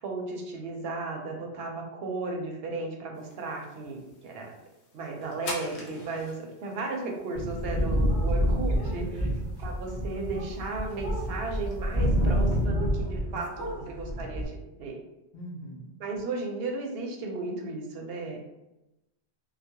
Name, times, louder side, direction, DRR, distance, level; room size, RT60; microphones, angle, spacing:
voice 1, 0.0-4.5 4.9-9.1 9.6-15.0 16.0-18.4, right 3 dB, 70° right, 1 dB, 0.8 m, -35 dB
sound 1, 3.1-12.7, left 2 dB, 80° left, 1.0 m, -47 dB
sound 2, 7.4-13.3 13.5-14.5, equal, 25° left, 0.9 m, -28 dB
voice 2, 8.8-9.4 13.3-13.4 13.7-14.3 15.3-15.9, equal, 55° left, 0 dB, 0.6 m, -43 dB
2.2 x 2.2 x 2.7 m, 0.94 s
omnidirectional pair, 1.1 m